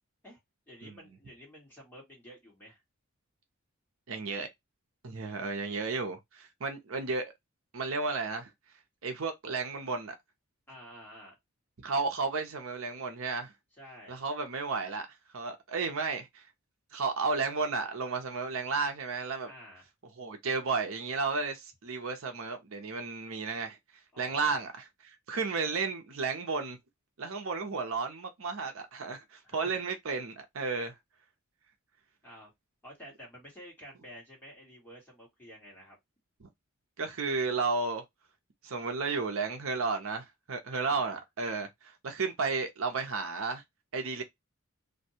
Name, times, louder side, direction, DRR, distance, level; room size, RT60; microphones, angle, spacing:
voice 1, 0.7-2.8 5.2-5.9 10.7-11.4 13.8-14.2 19.5-19.8 24.1-24.6 29.4-29.7 32.2-32.5 32.8-36.0 40.7-41.2, equal, 10° left, 1.4 m, -51 dB
voice 2, 4.1-4.5 5.0-7.3 7.7-8.5 9.0-10.2 11.8-13.5 14.1-15.1 15.3-16.4 16.9-19.5 20.2-23.8 24.2-24.7 25.0-26.8 27.2-30.9 36.4-36.5 37.0-38.0 38.6-43.6 43.9-44.2, right 4 dB, 70° right, 0.7 m, -33 dB
2.6 x 2.2 x 2.8 m
head